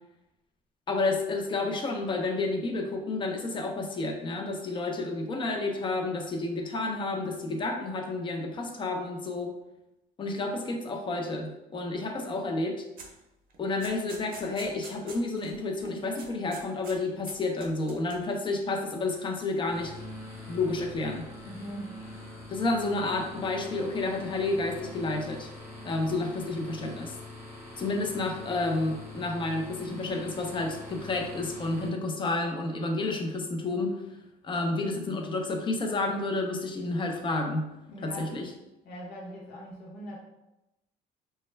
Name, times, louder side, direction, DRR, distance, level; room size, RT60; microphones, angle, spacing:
voice 1, 0.9-9.5 10.2-12.8 13.6-19.9 20.5-21.3 22.5-25.5 25.8-27.1 27.8-34.0 34.4-37.7 38.0-38.5, left 2 dB, 30° left, 2 dB, 0.4 m, -30 dB
sound 1, 13.0-13.2 13.5-15.5 15.8-15.9 16.2-17.0 17.2-18.3, right 4 dB, 55° right, 0.6 m, -46 dB
sound 2, 19.6-31.9, left 1 dB, 15° right, 0.8 m, -44 dB
voice 2, 21.4-21.9 37.9-38.3 38.8-40.2, equal, 75° left, -3 dB, 0.7 m, -41 dB
2.2 x 2.1 x 3.1 m, 0.94 s
cardioid pair, 110°, 17 cm